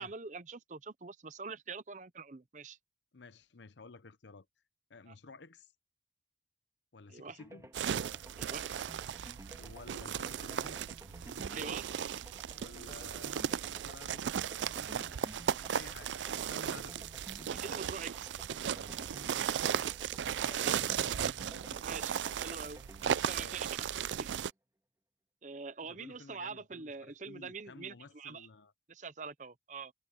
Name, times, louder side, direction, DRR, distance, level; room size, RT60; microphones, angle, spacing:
voice 1, 0.0-2.8 5.1-5.2 7.1-7.4 8.3-8.7 11.5-11.9 17.5-18.3 20.6-20.8 21.8-22.1 22.4-22.8 23.3-23.7 24.2-24.4 25.4-28.5 28.9-29.9, right 5 dB, 45° right, 0.7 m, -44 dB
voice 2, 3.1-4.5 4.9-5.7 6.9-7.7 9.6-10.9 12.5-14.3 14.9-17.1 20.4-22.0 23.0-23.6 25.8-28.7, left 3 dB, 80° left, 0.8 m, -53 dB
sound 1, 7.4-24.3, right 1 dB, 15° right, 2.4 m, -54 dB
sound 2, 7.7-24.5, right 8 dB, 85° right, 0.4 m, -36 dB
head